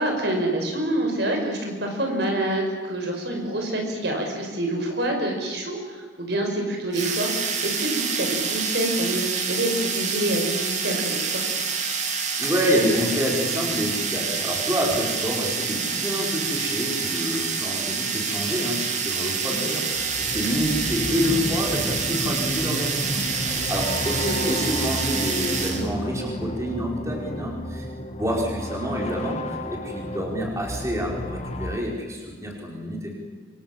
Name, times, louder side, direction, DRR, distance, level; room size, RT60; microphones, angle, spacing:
voice 1, 0.0-11.6 24.2-24.7, right 1 dB, 60° right, 2 dB, 6.0 m, -27 dB
sound 1, 6.9-25.9, right 5 dB, 40° right, 3.1 m, -27 dB
voice 2, 12.4-27.9 28.2-33.1, equal, 15° right, -1 dB, 5.4 m, -28 dB
sound 2, 19.4-31.8, equal, 35° left, 2.4 m, -32 dB
28.0 x 26.0 x 7.6 m, 1.5 s
head